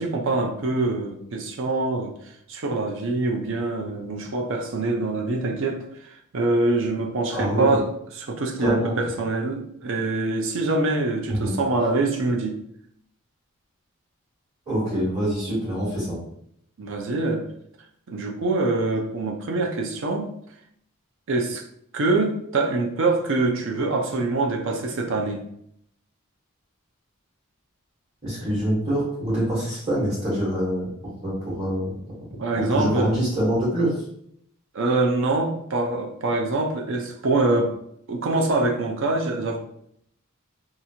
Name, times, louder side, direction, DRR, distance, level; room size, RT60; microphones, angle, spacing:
voice 1, 0.0-2.1 2.5-7.9 8.2-12.6 16.8-17.5 18.1-20.3 21.3-21.6 21.9-25.4 32.4-33.1 34.7-37.7 38.1-39.6, right 2 dB, 60° right, 2 dB, 0.5 m, -24 dB
voice 2, 7.3-7.6 8.6-8.9 11.3-11.5 14.7-16.2 28.2-30.9 31.2-31.9 32.6-33.9, equal, 30° right, -12 dB, 1.3 m, -25 dB
2.9 x 2.4 x 2.7 m, 0.71 s
head